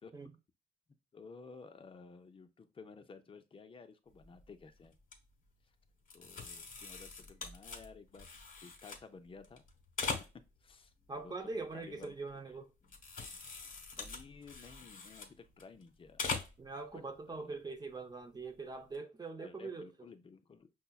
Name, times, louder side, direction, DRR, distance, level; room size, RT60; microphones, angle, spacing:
voice 1, 1.1-5.0 6.1-8.3 8.6-9.6 10.3-12.2 12.5-12.6 14.0-16.2 16.9-17.6 19.4-20.7, left 4 dB, 25° left, 0.5 m, -54 dB
sound 1, 4.1-4.5 4.8-5.2 6.1-9.0 9.4-10.7 11.1-12.5 12.8-15.8 16.1-16.7 17.1-17.2 18.7-19.0, left 4 dB, 45° left, 1.1 m, -43 dB
voice 2, 11.1-12.7 16.6-19.9, right 3 dB, 20° right, 0.6 m, -43 dB
5.4 x 2.1 x 2.3 m
cardioid pair, 90°, 20 cm